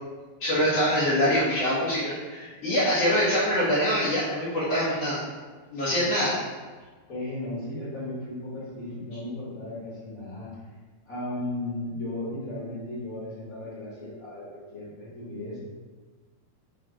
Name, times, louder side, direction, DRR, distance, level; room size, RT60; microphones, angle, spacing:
voice 1, 0.4-5.2 5.7-6.4, equal, 90° left, -10 dB, 1.3 m, -24 dB
voice 2, 7.1-10.5 11.1-15.6, left 1 dB, 60° left, -10 dB, 0.8 m, -35 dB
7.2 x 2.9 x 4.8 m, 1.4 s
omnidirectional pair, 4.7 m